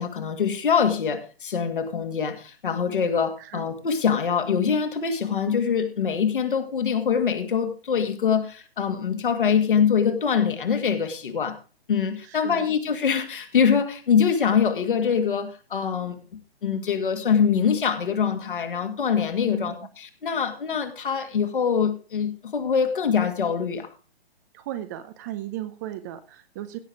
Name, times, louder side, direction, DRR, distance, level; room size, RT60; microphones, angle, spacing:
voice 1, 0.0-11.6 11.9-23.9, left 7 dB, 55° left, 2.2 m, -24 dB
voice 2, 12.2-12.7 19.4-19.8 24.5-26.8, right 13 dB, 20° right, 0.6 m, -36 dB
16.5 x 6.6 x 4.7 m
figure-of-eight pair, 130°, 31 cm